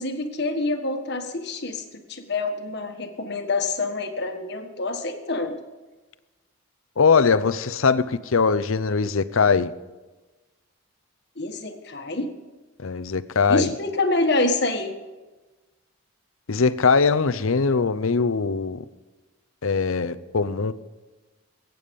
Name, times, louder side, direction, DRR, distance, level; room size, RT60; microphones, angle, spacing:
voice 1, 0.0-5.6 11.4-12.3 13.5-15.0, left 2 dB, 50° left, 6 dB, 1.5 m, -26 dB
voice 2, 7.0-9.7 12.8-13.7 16.5-18.8 19.6-20.7, left 5 dB, 75° left, 13 dB, 0.7 m, -21 dB
22.5 x 9.3 x 5.3 m, 1.2 s
head